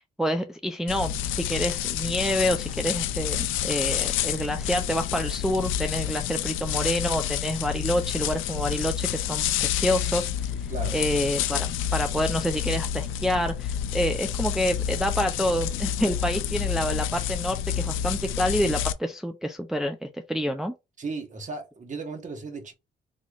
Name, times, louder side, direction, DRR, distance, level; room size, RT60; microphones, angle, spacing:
voice 1, 0.2-10.5 10.9-20.7, equal, ahead, 0.4 m, -28 dB
sound 1, 0.9-18.9, left 10 dB, 85° left, 0.4 m, -29 dB
voice 2, 21.0-22.7, right 3 dB, 40° right, 1.2 m, -35 dB
4.0 x 3.0 x 2.4 m
cardioid pair, 90°, 20 cm